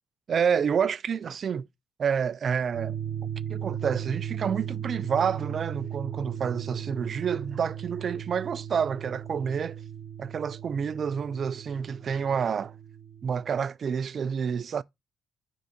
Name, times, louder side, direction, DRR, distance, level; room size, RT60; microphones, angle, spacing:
voice 1, 0.3-1.7 2.0-3.0 3.5-9.8 10.2-12.7 13.2-14.8, right 7 dB, 50° right, 0.4 m, -28 dB
sound 1, 2.7-13.6, right 9 dB, 75° right, 1.3 m, -37 dB
5.0 x 3.8 x 4.9 m
cardioid pair, 90°, 0 cm